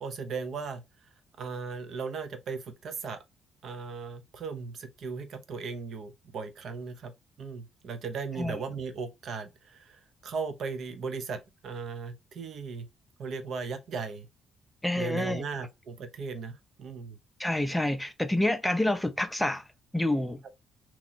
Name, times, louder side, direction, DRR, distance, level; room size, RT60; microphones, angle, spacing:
voice 1, 0.0-0.8 1.4-3.2 3.6-7.1 7.4-12.9 13.2-14.3 14.9-17.2, right 5 dB, 50° right, 0.7 m, -37 dB
voice 2, 14.8-15.4 17.4-19.6 19.9-20.4, left 1 dB, 5° left, 0.5 m, -28 dB
3.0 x 2.9 x 3.9 m
cardioid pair, 160°, 0 cm